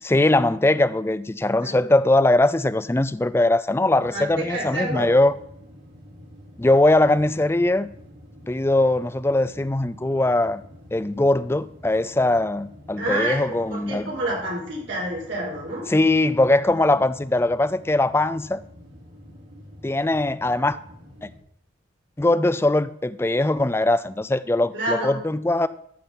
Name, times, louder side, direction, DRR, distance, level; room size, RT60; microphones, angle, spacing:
voice 1, 0.0-5.3 6.6-7.9 8.5-10.6 10.9-14.1 15.9-18.6 19.8-20.8 22.2-25.7, left 2 dB, 15° left, 0.3 m, -21 dB
sound 1, 3.9-21.4, equal, 90° right, 3.6 m, -47 dB
voice 2, 4.1-5.1 13.0-15.9 24.7-25.2, right 1 dB, 75° right, 5.3 m, -28 dB
13.5 x 5.9 x 5.4 m
head